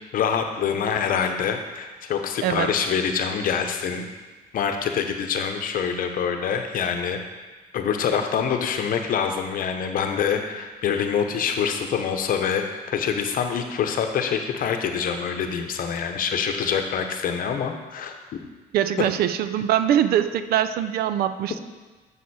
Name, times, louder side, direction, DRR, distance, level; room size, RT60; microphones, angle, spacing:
voice 1, 0.1-4.0 4.5-7.2 7.7-18.4 19.0-19.1, left 7 dB, 55° left, 5 dB, 0.9 m, -25 dB
voice 2, 18.7-21.6, right 10 dB, 65° right, 11 dB, 0.5 m, -22 dB
7.2 x 6.4 x 4.2 m, 1.3 s
cardioid pair, 110°, 17 cm